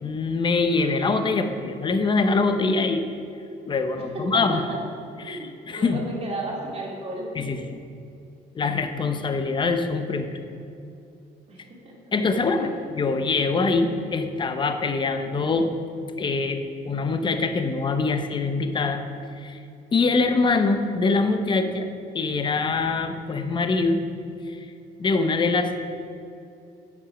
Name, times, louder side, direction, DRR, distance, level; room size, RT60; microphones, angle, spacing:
voice 1, 0.0-3.0 3.7-4.6 5.2-6.0 7.4-7.8 8.5-10.3 12.1-15.7 16.2-19.0 19.4-19.6 19.9-21.9 22.1-24.0 24.5-24.6 25.0-25.8, left 3 dB, 30° left, 8 dB, 0.8 m, -24 dB
voice 2, 4.1-4.8 5.2-7.3 11.5-11.9 12.3-12.8, right 2 dB, 35° right, -4 dB, 2.6 m, -34 dB
8.8 x 8.2 x 5.0 m, 2.6 s
cardioid pair, 110°, 17 cm